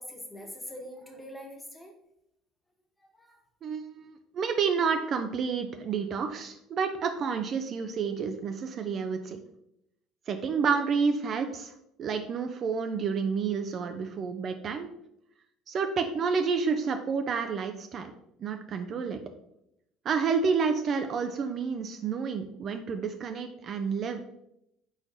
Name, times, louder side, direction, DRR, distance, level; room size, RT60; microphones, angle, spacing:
voice 1, 0.0-1.9 3.1-3.4, left 1 dB, 10° left, 2 dB, 1.0 m, -43 dB
voice 2, 3.6-9.4 10.3-11.7 12.0-14.9 15.7-18.1 18.4-19.2 20.0-24.3, right 5 dB, 45° right, 7 dB, 0.3 m, -29 dB
4.4 x 3.9 x 2.6 m, 0.79 s
figure-of-eight pair, 60°, 0 cm